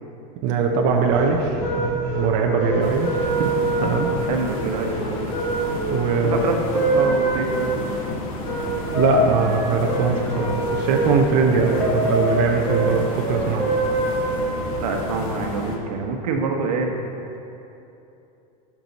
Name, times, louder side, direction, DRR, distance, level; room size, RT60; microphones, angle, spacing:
voice 1, 0.4-3.5 3.8-4.1 5.9-6.4 8.9-13.7, right 5 dB, 45° right, 1 dB, 0.7 m, -21 dB
sound 1, 0.9-14.8, right 1 dB, 15° left, 1.7 m, -25 dB
sound 2, 2.8-15.8, left 2 dB, 60° left, 1.3 m, -32 dB
voice 2, 4.2-5.6 6.2-7.8 14.8-16.9, right 4 dB, 85° right, 2 dB, 1.2 m, -26 dB
11.0 x 6.1 x 4.1 m, 2.9 s
supercardioid pair, 165°, 20 cm